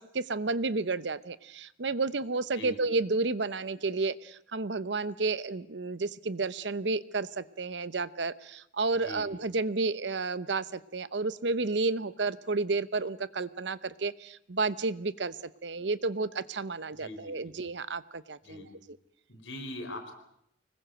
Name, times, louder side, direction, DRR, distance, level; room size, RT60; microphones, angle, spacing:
voice 1, 0.0-15.3 15.6-18.6, right 3 dB, 65° right, 16 dB, 0.8 m, -31 dB
voice 2, 17.0-17.5 18.4-18.7 19.3-20.1, left 1 dB, 90° left, 6 dB, 4.7 m, -41 dB
25.0 x 20.5 x 7.8 m, 0.75 s
head